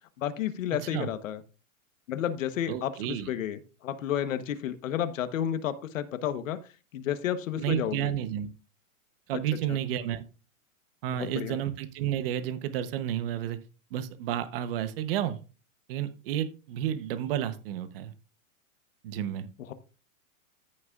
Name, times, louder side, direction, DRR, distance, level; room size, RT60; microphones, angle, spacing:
voice 1, 0.2-1.4 2.1-6.6 6.9-8.1 9.3-9.4 9.7-9.8 11.2-11.6 19.7-19.8, left 10 dB, 65° left, 11 dB, 1.2 m, -31 dB
voice 2, 0.7-1.1 2.7-3.3 7.6-8.5 9.3-10.3 11.0-13.6 13.9-15.4 15.9-18.1 19.0-19.5, right 11 dB, 40° right, 11 dB, 1.0 m, -31 dB
14.5 x 6.5 x 2.4 m, 0.33 s
supercardioid pair, 160°, 42 cm